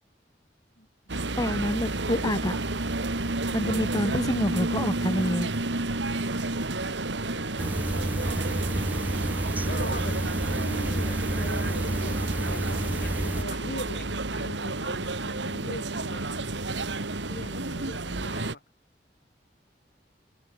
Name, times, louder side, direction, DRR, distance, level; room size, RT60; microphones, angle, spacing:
sound 1, 1.1-18.6, right 2 dB, 90° right, 2.4 m, -30 dB
voice 1, 1.4-2.6 3.5-5.5, left 1 dB, 20° left, 2.7 m, -27 dB
voice 2, 7.2-8.1 9.7-10.2 10.5-16.2 17.3-18.6, left 1 dB, 60° left, 6.8 m, -41 dB
sound 2, 7.6-13.4, right 1 dB, 10° right, 0.3 m, -30 dB
head